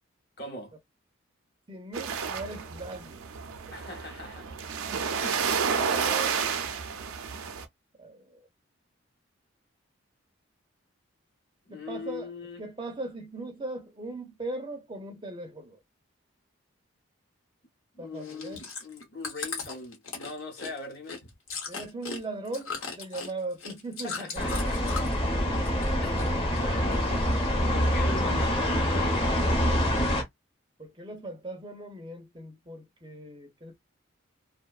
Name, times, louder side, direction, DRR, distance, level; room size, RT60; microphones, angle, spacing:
voice 1, 0.4-0.7 3.7-4.5 5.2-6.6 11.6-12.6 17.9-21.2 24.0-25.1 26.0-29.3, left 2 dB, 50° left, 0.8 m, -41 dB
voice 2, 1.7-3.3 3.6-3.8 8.0-8.5 11.7-12.3 12.6-15.8 18.0-18.7 21.7-24.4 30.8-33.8, right 2 dB, 20° right, 0.4 m, -39 dB
sound 1, 1.9-7.6, right 6 dB, 90° right, 0.4 m, -31 dB
Chewing mastication, 18.2-25.2 25.5-26.3 26.5-27.5 28.0-28.1, left 5 dB, 85° left, 1.0 m, -38 dB
sound 2, 24.4-30.2, equal, 25° left, 0.7 m, -26 dB
2.5 x 2.1 x 2.3 m
head